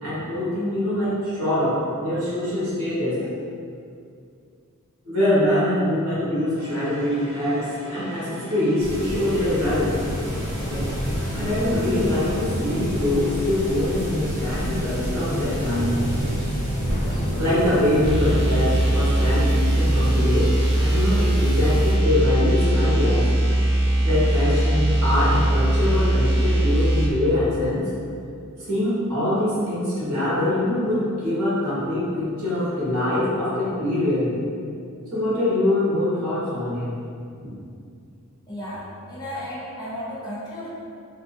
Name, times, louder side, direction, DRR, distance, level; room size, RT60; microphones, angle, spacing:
voice 1, 0.0-3.2 5.0-10.0 11.3-16.0 16.3-16.4 17.1-23.3 24.0-27.8 28.6-34.3 35.1-37.0, left 1 dB, 70° right, -10 dB, 1.4 m, -24 dB
sound 1, 6.5-23.7, left 1 dB, 70° left, 1.0 m, -40 dB
sound 2, 8.8-21.9, equal, 55° right, 1.3 m, -29 dB
sound 3, 18.0-27.1, right 1 dB, 20° right, 0.5 m, -20 dB
voice 2, 38.5-40.7, left 1 dB, 20° left, -9 dB, 0.7 m, -34 dB
3.5 x 2.4 x 2.6 m, 2.4 s
head